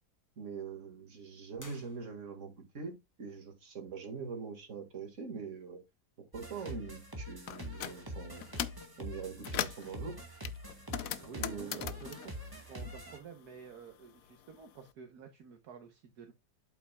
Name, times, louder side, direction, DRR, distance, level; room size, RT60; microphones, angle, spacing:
voice 1, 0.4-5.8 6.3-8.5 9.0-10.2 11.4-11.9 12.8-12.9, right 5 dB, 45° right, 2.2 m, -43 dB
sound 1, 1.6-2.6, left 1 dB, 10° left, 1.2 m, -56 dB
sound 2, 6.3-13.2, equal, 15° right, 1.9 m, -45 dB
sound 3, 7.5-8.0 8.4-8.9 9.2-9.9 10.4-13.4 13.6-14.8, left 11 dB, 65° left, 0.9 m, -40 dB
voice 2, 10.9-12.3 12.7-16.3, right 5 dB, 65° right, 1.5 m, -50 dB
8.4 x 7.9 x 2.3 m
omnidirectional pair, 1.8 m